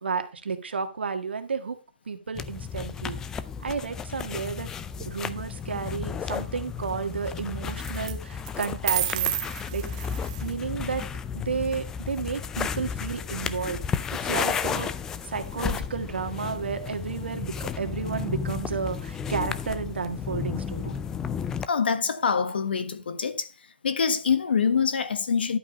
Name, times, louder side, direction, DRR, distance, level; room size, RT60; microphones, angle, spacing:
voice 1, 0.0-1.8 2.1-3.2 3.6-4.7 5.1-9.4 9.7-9.8 10.4-11.0 11.3-13.8 14.2-14.9 15.3-20.9, right 5 dB, 80° right, 1.7 m, -32 dB
sound 1, 2.4-21.7, left 7 dB, 10° left, 0.4 m, -33 dB
sound 2, 4.9-5.5 7.8-8.1 8.5-10.5, right 11 dB, 30° right, 1.2 m, -30 dB
voice 2, 21.7-23.5 23.8-25.6, left 6 dB, 65° left, 1.4 m, -25 dB
11.5 x 5.4 x 5.1 m
hypercardioid pair, 155°, 6 cm